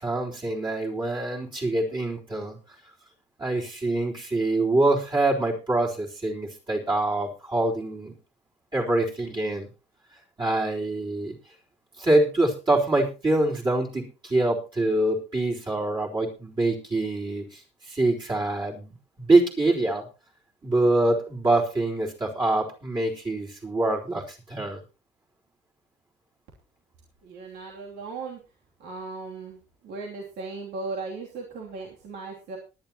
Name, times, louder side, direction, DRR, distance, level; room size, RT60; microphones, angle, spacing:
voice 1, 0.0-2.6 3.4-8.1 8.7-9.7 10.4-11.3 12.0-20.0 20.6-24.8, right 2 dB, 25° right, -4 dB, 3.9 m, -25 dB
voice 2, 27.2-28.4 28.8-32.6, right 3 dB, 75° right, -1 dB, 2.9 m, -37 dB
19.5 x 10.5 x 3.0 m, 0.30 s
cardioid pair, 110°, 17 cm